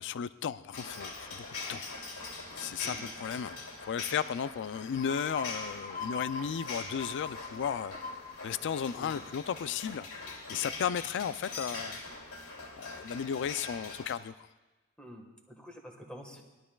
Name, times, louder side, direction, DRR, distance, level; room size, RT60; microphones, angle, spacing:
voice 1, 0.0-1.9 2.6-3.6 3.8-8.0 8.4-10.1 10.5-12.0 12.8-14.5, left 8 dB, 55° left, 15 dB, 0.3 m, -34 dB
sound 1, 0.7-14.1, left 3 dB, 85° left, 2.8 m, -43 dB
sound 2, 5.0-10.4, left 4 dB, 35° left, 0.9 m, -43 dB
voice 2, 8.9-9.2 15.0-16.4, equal, 5° left, 1 dB, 1.4 m, -48 dB
20.0 x 12.0 x 2.3 m, 1.2 s
head